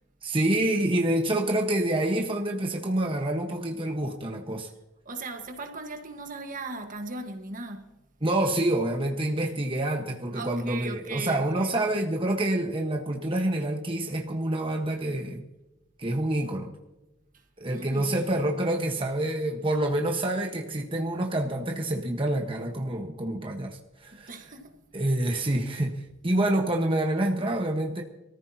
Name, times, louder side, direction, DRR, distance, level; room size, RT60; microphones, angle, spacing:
voice 1, 0.2-4.7 8.2-15.4 16.0-16.7 17.6-24.5 24.9-28.0, right 1 dB, 30° right, 1.3 m, -27 dB
voice 2, 5.0-7.9 10.3-11.7 17.7-18.1 24.1-24.8, right 3 dB, 45° right, 1.5 m, -38 dB
24.5 x 14.5 x 2.9 m
head